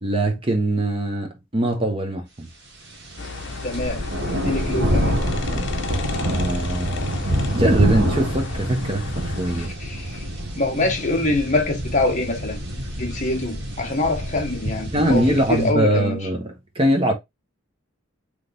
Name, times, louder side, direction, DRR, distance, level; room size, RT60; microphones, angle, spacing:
voice 1, 0.0-2.5 6.2-7.1 7.5-9.7 14.9-17.1, right 1 dB, 25° right, 1.0 m, -22 dB
sound 1, 3.0-15.7, equal, 55° right, 1.3 m, -26 dB
sound 2, 3.2-9.7, left 5 dB, 60° left, 0.7 m, -35 dB
voice 2, 3.6-4.0 4.4-5.2 9.8-10.2 10.5-12.6 13.0-16.2, left 2 dB, 35° left, 1.1 m, -24 dB
3.5 x 3.3 x 3.9 m
head